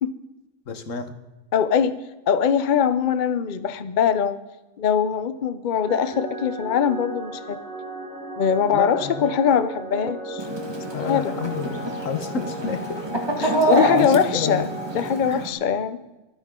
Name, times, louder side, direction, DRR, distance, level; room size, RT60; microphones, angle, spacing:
voice 1, 0.7-1.1 8.7-9.3 10.9-13.1 13.4-14.7 15.3-15.4, left 5 dB, 75° left, 9 dB, 1.5 m, -29 dB
voice 2, 1.5-2.0 2.3-4.4 4.8-7.6 8.4-10.4 11.1-11.3 13.4-14.6 14.9-16.0, left 7 dB, 45° left, 13 dB, 0.7 m, -22 dB
sound 1, 5.9-15.2, right 1 dB, 85° right, 2.7 m, -35 dB
Chicken rooster, 10.4-15.5, right 1 dB, 20° right, 1.9 m, -26 dB
24.0 x 9.7 x 3.7 m, 1.1 s
omnidirectional pair, 1.4 m